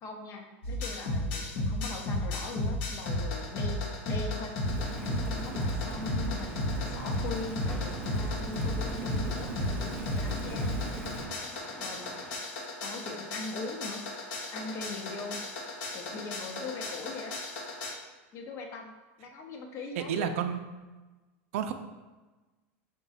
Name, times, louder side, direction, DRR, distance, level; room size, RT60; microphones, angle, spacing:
voice 1, 0.0-4.5 5.3-10.7 11.8-12.1 12.8-14.0 14.5-15.4 15.9-17.4 18.3-18.9 19.2-20.3, left 3 dB, 40° left, 2 dB, 0.7 m, -41 dB
sound 1, 0.6-17.9, left 1 dB, 65° left, 1.0 m, -34 dB
Rain, 4.6-11.3, right 2 dB, 30° right, 0.6 m, -39 dB
sound 2, 4.8-12.4, left 1 dB, 5° left, 0.4 m, -48 dB
voice 2, 20.0-20.6 21.5-21.7, right 8 dB, 75° right, 8 dB, 0.4 m, -30 dB
4.8 x 2.3 x 4.0 m, 1.2 s
supercardioid pair, 130°, 7 cm